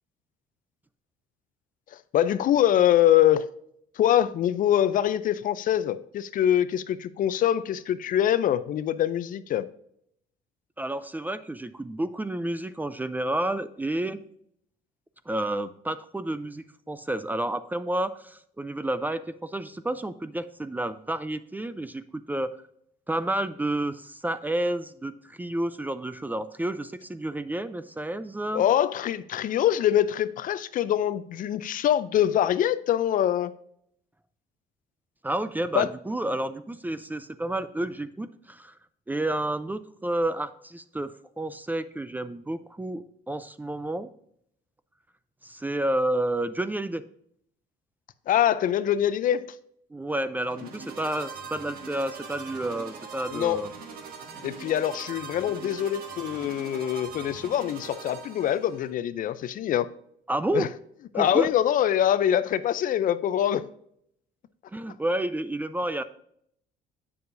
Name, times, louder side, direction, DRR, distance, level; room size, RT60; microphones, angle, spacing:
voice 1, 1.9-3.4 4.0-9.7 28.5-33.5 35.7-35.9 48.3-49.4 53.3-53.6 54.4-59.9 60.5-60.7 61.1-63.6, left 11 dB, 55° left, 14 dB, 0.5 m, -24 dB
voice 2, 10.8-14.2 15.3-22.5 23.1-28.6 35.2-38.7 39.1-44.1 45.4-47.0 49.9-53.7 60.3-60.7 61.1-61.5 64.7-66.0, right 1 dB, 10° right, 13 dB, 0.4 m, -30 dB
sound 1, 50.4-58.9, right 5 dB, 60° right, 1.5 m, -42 dB
8.5 x 6.8 x 2.6 m, 0.69 s
cardioid pair, 110°, 17 cm